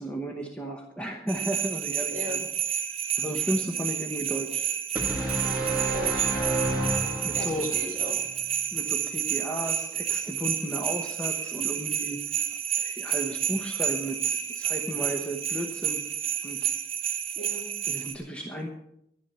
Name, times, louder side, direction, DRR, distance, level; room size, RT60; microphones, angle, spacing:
voice 1, 0.0-2.5 3.2-4.6 7.2-7.7 8.7-12.2 12.8-16.0 16.4-16.7 17.9-18.7, right 1 dB, 5° left, 1 dB, 1.0 m, -34 dB
sound 1, 1.3-18.2, right 10 dB, 35° right, 1.0 m, -30 dB
sound 2, 5.0-7.9, right 1 dB, 10° right, 2.4 m, -29 dB
voice 2, 5.9-6.6 7.3-8.1 17.4-17.7, left 1 dB, 45° left, -2 dB, 4.0 m, -37 dB
11.5 x 11.0 x 5.6 m, 0.78 s
head